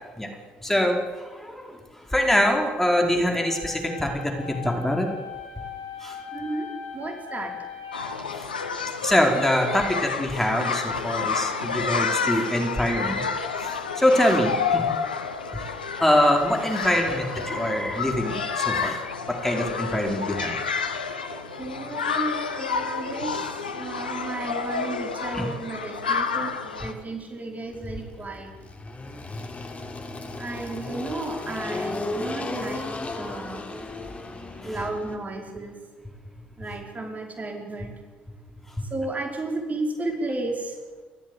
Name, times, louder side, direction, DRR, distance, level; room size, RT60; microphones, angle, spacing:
voice 1, 0.6-5.1 6.0-6.2 8.3-8.5 9.0-13.2 13.6-14.9 15.5-15.7 16.0-20.6 21.3-21.4 25.3-25.5 33.7-34.8, left 1 dB, 5° left, 2 dB, 4.8 m, -24 dB
sound 1, 3.3-8.3, left 7 dB, 65° left, 4.2 m, -39 dB
voice 2, 6.3-6.7 6.9-7.5 21.6-23.3 23.7-26.5 26.8-28.5 30.4-32.9 33.2-33.6 34.6-35.7 36.6-37.9 38.9-40.7, right 2 dB, 30° right, 3 dB, 5.1 m, -33 dB
sound 2, 7.9-26.9, left 5 dB, 90° left, 1.2 m, -29 dB
Engine, 27.7-35.1, left 2 dB, 30° left, 4.1 m, -35 dB
30.0 x 14.0 x 8.2 m, 1.4 s
hypercardioid pair, 50°, 5 cm